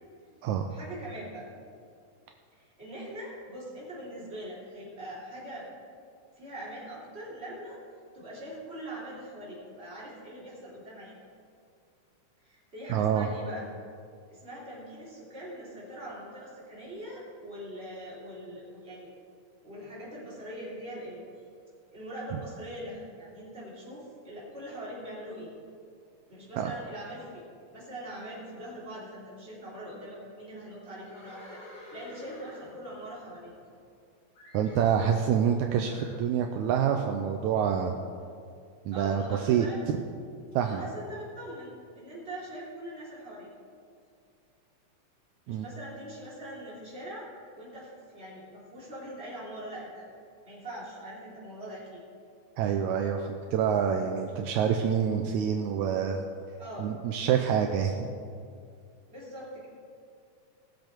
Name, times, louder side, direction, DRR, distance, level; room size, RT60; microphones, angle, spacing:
voice 1, 0.7-1.5 2.5-5.7 6.4-7.8 8.1-11.1 12.4-13.7 14.3-19.1 19.6-21.2 21.9-25.5 26.3-27.4 27.7-33.5 38.9-39.8 40.6-43.5 45.5-47.3 47.6-50.1 50.4-52.0 56.6-56.9 59.1-59.7, right 1 dB, 20° right, -7 dB, 3.4 m, -42 dB
voice 2, 12.9-13.3 26.6-26.7 34.5-38.0 38.9-39.7 40.5-40.8 45.5-45.7 52.6-56.2 56.8-58.0, right 8 dB, 80° right, 4 dB, 1.9 m, -27 dB
Livestock farm animals working animals, 30.9-34.0 34.3-35.0 35.8-36.2, left 1 dB, 65° left, 4.2 m, -50 dB
19.0 x 7.8 x 4.5 m, 2.3 s
omnidirectional pair, 3.5 m